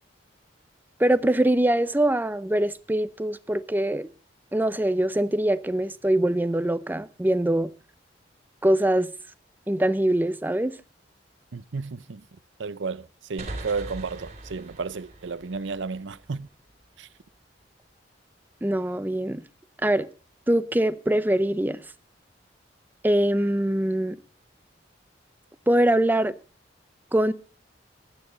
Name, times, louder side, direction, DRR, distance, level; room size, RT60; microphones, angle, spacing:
voice 1, 1.0-4.1 4.5-7.7 8.6-9.1 9.7-10.7 18.6-19.4 19.8-20.1 20.5-21.8 23.0-24.2 25.7-26.3 27.1-27.3, right 1 dB, 10° right, 0.6 m, -23 dB
voice 2, 11.5-12.2 12.6-16.5 17.0-17.1, right 4 dB, 85° right, 0.7 m, -33 dB
sound 1, 13.4-16.9, right 2 dB, 40° right, 3.2 m, -41 dB
15.0 x 11.0 x 3.9 m
head